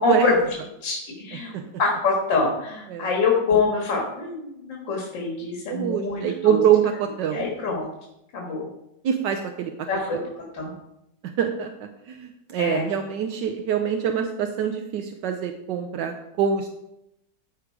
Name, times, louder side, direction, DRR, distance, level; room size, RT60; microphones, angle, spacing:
voice 1, 0.0-0.4 0.8-1.5 1.8-6.6 7.3-7.9 8.3-8.7 9.9-10.7 12.6-12.9, left 4 dB, 85° left, -1 dB, 2.4 m, -25 dB
voice 2, 5.7-7.5 9.0-9.7 11.4-16.7, right 8 dB, 80° right, 5 dB, 1.4 m, -24 dB
13.5 x 4.9 x 4.8 m, 0.84 s
omnidirectional pair, 1.9 m